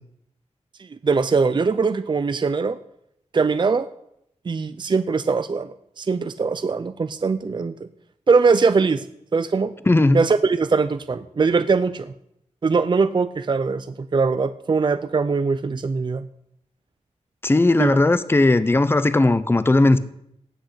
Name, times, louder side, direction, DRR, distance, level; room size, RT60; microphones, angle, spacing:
voice 1, 0.8-2.8 3.3-3.9 4.5-7.9 8.3-9.1 9.3-9.7 10.1-12.1 12.6-16.2 17.8-17.9, right 4 dB, 40° right, 0.5 m, -21 dB
voice 2, 9.9-10.2 17.4-20.0, left 2 dB, 20° left, 0.7 m, -17 dB
17.5 x 6.5 x 8.2 m
wide cardioid pair, 140°, 12 cm